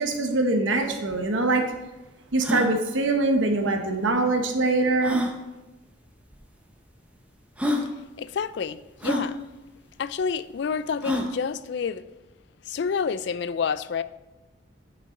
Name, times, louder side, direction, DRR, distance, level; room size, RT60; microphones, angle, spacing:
voice 1, 0.0-1.7 2.3-5.2, right 2 dB, 80° right, 4 dB, 1.0 m, -23 dB
sound 1, 0.8-0.9 1.1-1.2 1.7-1.8 2.3-2.7 4.0-4.1 5.0-5.3 6.3-6.4 7.2-7.3 7.6-7.9 9.0-9.3 11.0-11.4, left 1 dB, 5° right, 0.7 m, -27 dB
voice 2, 8.2-9.4 10.0-12.0 12.7-14.0, left 6 dB, 60° left, 15 dB, 0.3 m, -28 dB
8.7 x 5.5 x 3.8 m, 1.0 s
head